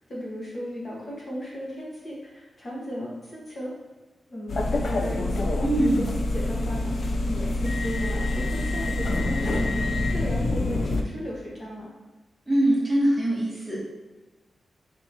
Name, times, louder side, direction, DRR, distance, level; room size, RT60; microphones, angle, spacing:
voice 1, 0.1-3.7 4.3-6.1 6.3-9.8 10.1-11.9, equal, 40° left, -5 dB, 1.0 m, -35 dB
sound 1, 4.5-11.0, left 2 dB, 55° left, 0.3 m, -26 dB
voice 2, 5.6-6.1 12.5-13.8, right 1 dB, 5° right, -6 dB, 1.0 m, -23 dB
4.6 x 3.6 x 2.7 m, 1.2 s
wide cardioid pair, 165°, 0 cm